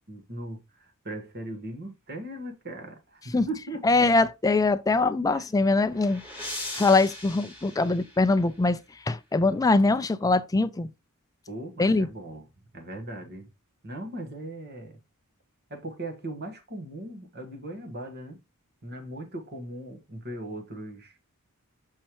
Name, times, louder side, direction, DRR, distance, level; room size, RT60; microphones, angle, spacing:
voice 1, 0.1-3.9 5.3-5.6 11.5-12.5 12.7-13.5 13.8-15.0 15.7-18.4 18.8-21.2, right 1 dB, 50° right, 1.5 m, -39 dB
voice 2, 3.8-6.2 6.7-10.9 11.8-12.1, left 3 dB, 15° left, 0.4 m, -23 dB
sound 1, 5.5-8.7, left 1 dB, 10° right, 2.1 m, -40 dB
6.6 x 5.4 x 3.0 m
head